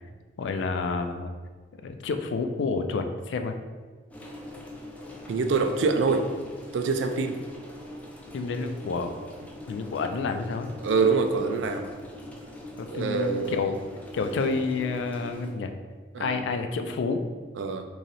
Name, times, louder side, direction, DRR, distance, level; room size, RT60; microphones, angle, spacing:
voice 1, 0.4-1.3 1.8-3.6 8.3-9.1 9.4-10.7 12.8-13.8 14.1-15.7 16.2-17.3, left 4 dB, 80° left, 7 dB, 0.3 m, -29 dB
sound 1, 4.1-15.5, left 1 dB, 10° left, 0.4 m, -43 dB
voice 2, 5.3-6.2 6.7-7.4 10.8-11.9 12.9-13.7 16.1-16.4 17.6-17.9, right 4 dB, 85° right, 6 dB, 0.4 m, -25 dB
3.1 x 2.7 x 4.0 m, 1.5 s
head